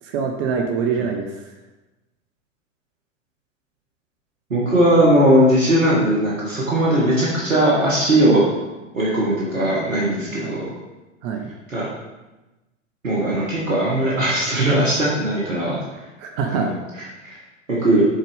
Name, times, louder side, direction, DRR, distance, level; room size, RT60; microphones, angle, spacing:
voice 1, 0.0-1.4 10.4-10.6 11.2-11.5 16.2-16.7, right 6 dB, 45° right, 3 dB, 0.8 m, -25 dB
voice 2, 4.5-8.5 8.9-10.6 11.7-11.8 13.0-15.8 16.5-16.7 17.2-17.4 17.7-18.1, right 1 dB, 85° right, -7 dB, 1.6 m, -18 dB
7.2 x 4.1 x 3.5 m, 1.1 s
figure-of-eight pair, 95°, 38 cm